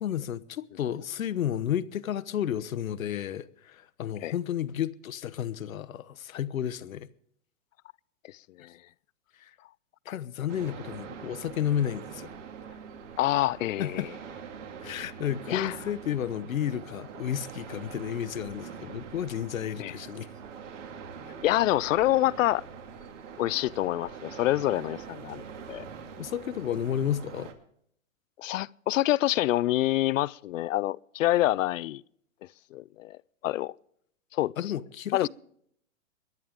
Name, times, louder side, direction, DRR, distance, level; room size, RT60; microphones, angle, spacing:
voice 1, 0.0-7.1 9.4-9.5 10.1-12.3 13.8-14.1 14.8-20.3 26.2-27.5 34.6-35.3, left 10 dB, 90° left, 0.9 m, -32 dB
voice 2, 8.3-8.7 13.2-14.1 15.5-15.7 19.8-19.9 21.4-22.6 23.4-25.9 28.4-32.0 32.7-33.2 33.4-33.7 34.3-34.5 35.1-35.3, left 15 dB, 70° left, 0.5 m, -27 dB
sound 1, 10.5-27.5, right 6 dB, 65° right, 2.4 m, -44 dB
23.5 x 11.0 x 3.5 m
hypercardioid pair, 140°, 40 cm